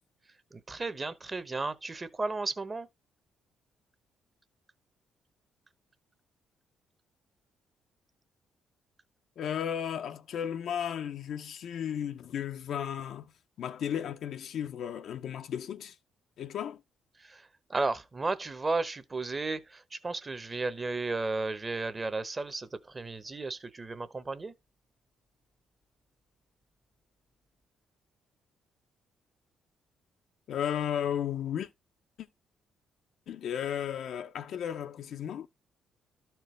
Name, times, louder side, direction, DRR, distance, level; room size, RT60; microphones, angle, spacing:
voice 1, 0.5-2.9 17.2-24.5, right 3 dB, 25° right, 0.9 m, -34 dB
voice 2, 9.4-13.3 13.6-16.0 16.4-16.8 30.5-31.7 32.2-32.3 33.3-35.5, left 9 dB, 70° left, 0.6 m, -34 dB
12.5 x 4.5 x 3.2 m
cardioid pair, 90°, 0 cm